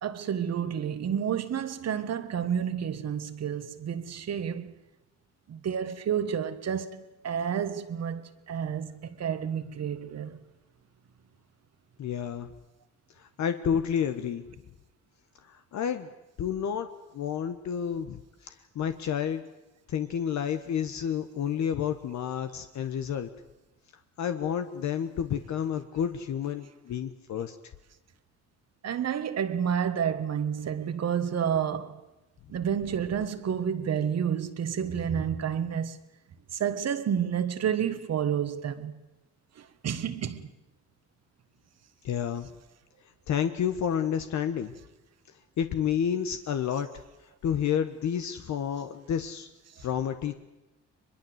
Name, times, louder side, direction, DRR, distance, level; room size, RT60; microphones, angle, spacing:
voice 1, 0.0-4.7 5.5-10.4 28.8-32.0 32.5-36.0 36.5-39.0 39.6-40.5 49.8-49.9, right 8 dB, 55° right, 1.7 m, -30 dB
voice 2, 12.0-12.5 13.2-14.4 15.5-16.1 16.4-16.9 17.1-19.4 19.9-23.3 24.2-27.5 42.0-42.5 43.3-44.7 45.6-46.9 47.4-49.5 49.8-50.4, left 8 dB, 65° left, 1.4 m, -30 dB
22.5 x 22.0 x 8.1 m
cardioid pair, 90°, 30 cm